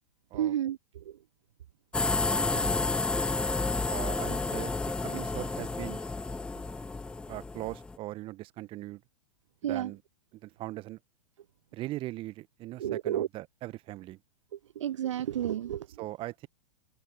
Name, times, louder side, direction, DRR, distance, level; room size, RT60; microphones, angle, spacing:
voice 1, 0.3-1.2 9.6-9.9 12.8-13.3 14.5-15.9, right 11 dB, 65° right, 0.5 m, -31 dB
sound 1, 1.9-8.0, left 3 dB, 5° left, 0.5 m, -31 dB
voice 2, 2.3-3.0 3.9-4.7 5.0-6.0 7.3-9.0 9.6-10.0 10.3-11.0 11.7-14.2 16.0-16.5, right 17 dB, 30° right, 1.4 m, -40 dB
open air
figure-of-eight pair, 100°, 17 cm